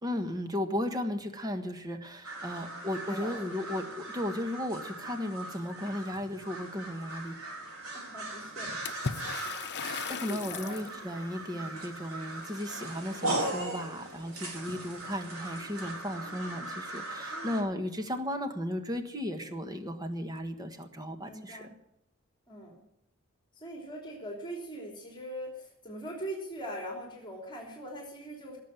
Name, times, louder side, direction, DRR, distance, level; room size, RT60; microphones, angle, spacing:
voice 1, 0.0-7.4 10.1-21.6, left 1 dB, 20° right, 6 dB, 1.5 m, -35 dB
sound 1, 2.2-17.6, right 2 dB, 85° right, 4.5 m, -39 dB
voice 2, 7.9-9.0 9.4-9.5 10.2-11.2 11.5-11.7 17.3-17.8 21.1-21.7 22.5-22.8 23.5-28.6, right 1 dB, 20° left, 0 dB, 3.3 m, -42 dB
Water / Splash splatter, 8.9-10.9, left 5 dB, 55° left, 0.9 m, -37 dB
17.5 x 7.5 x 9.1 m, 0.79 s
head